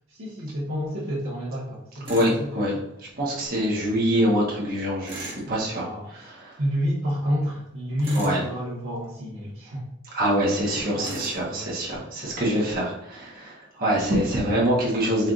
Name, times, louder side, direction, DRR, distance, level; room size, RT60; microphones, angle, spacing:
voice 1, 0.1-2.6 3.2-3.4 5.4-6.3 6.6-9.9 10.9-11.2 11.4-12.4, equal, 65° right, -9 dB, 1.2 m, -30 dB
Tools, 2.1-2.4 5.1-5.5 8.0-8.5 11.0-11.4, right 1 dB, 25° right, 1.2 m, -37 dB
voice 2, 2.1-2.7 3.2-5.8 6.4-6.5 8.2-8.4 10.1-15.3, equal, 45° right, -6 dB, 1.0 m, -24 dB
4.4 x 2.4 x 3.7 m, 0.80 s
head